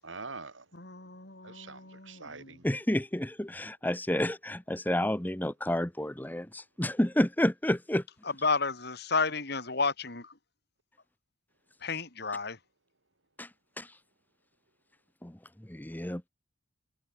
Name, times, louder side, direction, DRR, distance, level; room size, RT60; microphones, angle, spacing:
voice 1, 0.0-0.7 1.4-2.6, right 3 dB, 85° right, 7.4 m, -44 dB
voice 2, 0.7-2.6 8.4-10.4 11.8-12.6, left 4 dB, 60° left, 4.2 m, -32 dB
voice 3, 2.6-8.0 13.4-13.5 13.8-14.0 15.2-16.3, left 1 dB, 10° left, 1.0 m, -30 dB
head